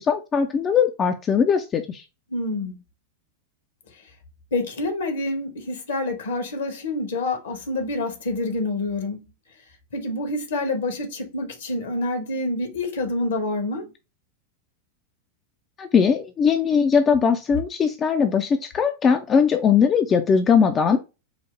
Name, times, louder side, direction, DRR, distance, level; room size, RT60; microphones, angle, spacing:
voice 1, 0.0-2.0 15.8-21.0, left 6 dB, 25° left, 0.4 m, -20 dB
voice 2, 2.3-2.8 4.5-9.2 9.9-13.9, left 2 dB, 65° left, 1.1 m, -27 dB
4.8 x 2.0 x 3.2 m
figure-of-eight pair, 90°, 0 cm